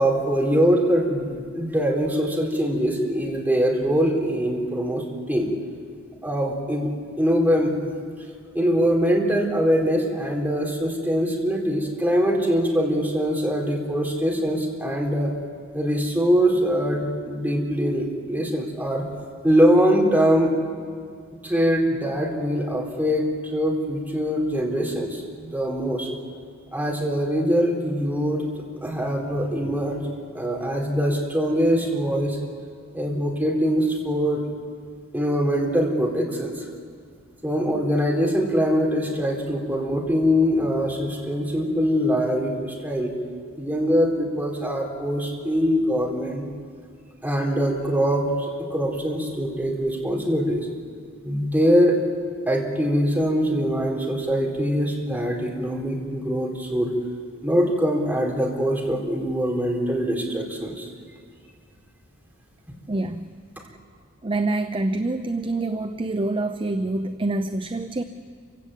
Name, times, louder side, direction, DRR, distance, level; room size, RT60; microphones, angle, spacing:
voice 1, 0.0-5.5 6.2-7.9 8.5-15.3 15.7-19.1 19.4-20.5 21.4-26.1 26.7-30.1 30.3-32.4 32.9-34.5 35.1-36.7 37.4-43.1 43.6-46.4 47.2-50.7 51.2-52.0 52.5-56.9 57.4-60.9, equal, 10° right, -1 dB, 3.9 m, -23 dB
voice 2, 62.9-63.3 63.6-63.7 64.2-68.0, right 2 dB, 25° right, 9 dB, 0.6 m, -26 dB
27.5 x 17.0 x 8.4 m, 2.1 s
head